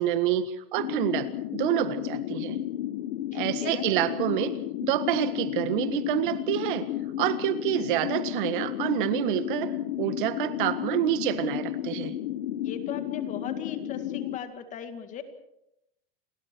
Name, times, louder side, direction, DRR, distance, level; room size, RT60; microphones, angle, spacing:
voice 1, 0.0-2.6 3.3-6.9 7.2-12.2, right 13 dB, 60° right, 11 dB, 1.8 m, -28 dB
sound 1, 0.8-14.4, left 13 dB, 70° left, 1.3 m, -32 dB
voice 2, 3.3-3.9 12.6-15.2, left 8 dB, 25° left, 8 dB, 2.1 m, -38 dB
29.5 x 22.5 x 4.6 m, 0.81 s
supercardioid pair, 160°, 29 cm